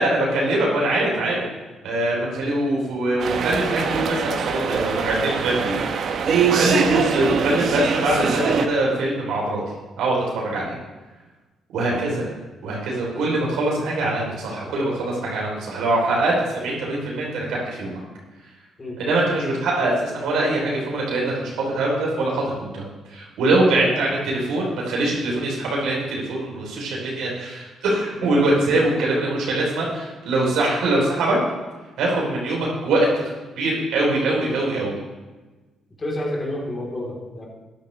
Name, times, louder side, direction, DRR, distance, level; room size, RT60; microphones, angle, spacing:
voice 1, 0.0-1.4 1.8-5.8 6.4-9.6 10.0-10.7 11.7-12.3 12.6-18.0 19.0-31.4 32.0-33.3 33.6-35.0, right 2 dB, 85° right, -3 dB, 3.2 m, -23 dB
sound 1, 3.2-8.7, right 6 dB, 65° right, 0.9 m, -23 dB
voice 2, 36.0-37.5, left 1 dB, 30° left, -2 dB, 3.3 m, -31 dB
13.0 x 10.0 x 3.2 m, 1.2 s
cardioid pair, 90°, 0 cm